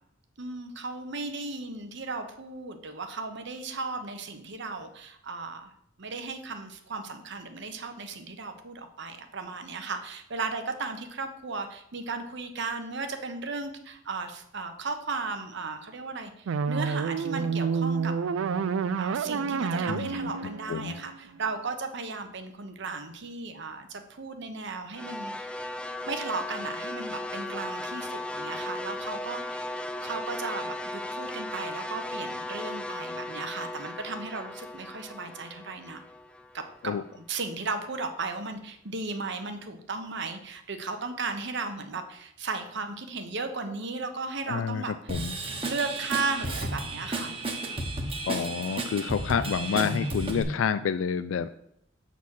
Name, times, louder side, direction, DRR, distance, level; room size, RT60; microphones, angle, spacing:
voice 1, 0.4-5.7 6.0-18.1 19.0-25.5 26.1-29.6 30.0-36.0 36.5-44.9 45.5-47.3, right 4 dB, 65° right, 7 dB, 1.0 m, -35 dB
sound 1, 16.5-21.6, right 5 dB, 90° right, 0.4 m, -29 dB
voice 2, 19.9-20.2 20.7-21.0 36.8-37.0 44.5-45.4 48.3-51.6, left 7 dB, 80° left, 11 dB, 0.3 m, -29 dB
sound 2, 24.9-37.2, left 1 dB, 5° left, 0.5 m, -36 dB
Drum kit / Drum, 45.1-50.4, right 2 dB, 30° right, 1.0 m, -33 dB
7.2 x 4.1 x 6.3 m, 0.75 s
head